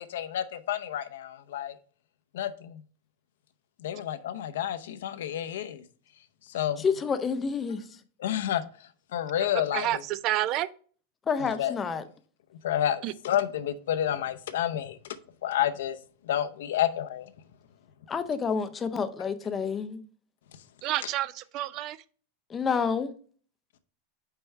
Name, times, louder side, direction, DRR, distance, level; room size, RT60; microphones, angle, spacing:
voice 1, 0.0-1.7 2.3-2.8 3.8-5.8 6.5-6.8 8.2-8.6 9.1-10.0 11.4-11.7 12.6-15.0 15.4-16.0 16.2-17.3 21.0-21.1, left 11 dB, 80° left, 0.7 m, -30 dB
voice 2, 6.8-7.8 11.3-12.0 18.1-20.0 22.5-23.1, left 5 dB, 15° left, 0.5 m, -29 dB
voice 3, 9.4-10.7 13.0-13.1 20.8-22.0, right 14 dB, 35° right, 0.3 m, -29 dB
5.6 x 4.5 x 4.4 m
supercardioid pair, 160°, 0 cm